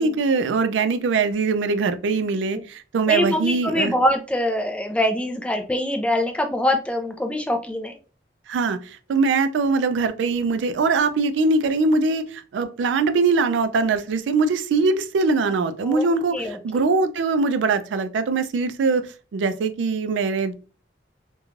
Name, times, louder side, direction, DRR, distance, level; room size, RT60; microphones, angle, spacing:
voice 1, 0.0-3.9 8.5-19.1 19.3-20.5, right 4 dB, 85° right, 10 dB, 0.3 m, -22 dB
voice 2, 3.1-8.0 15.8-16.1 16.3-16.8, left 1 dB, 5° left, 5 dB, 0.3 m, -24 dB
3.1 x 2.2 x 2.3 m, 0.34 s
head